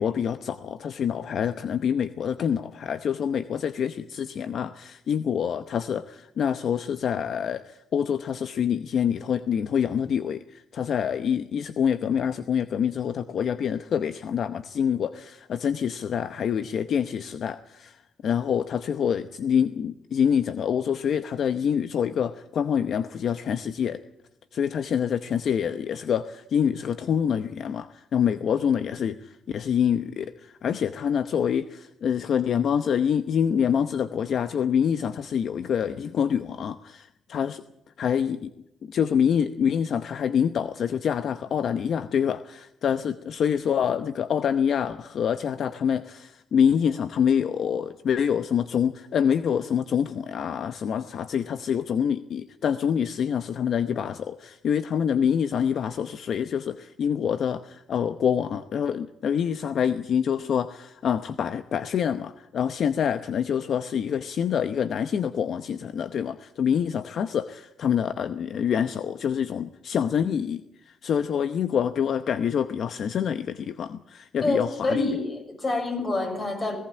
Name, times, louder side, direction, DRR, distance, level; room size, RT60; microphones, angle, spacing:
voice 1, 0.0-24.0 24.5-37.6 38.0-38.5 38.8-75.2, left 8 dB, 60° left, 11 dB, 0.8 m, -26 dB
voice 2, 74.4-76.8, left 2 dB, 35° left, 5 dB, 6.6 m, -27 dB
18.0 x 17.5 x 8.7 m, 0.86 s
cardioid pair, 90°, 0 cm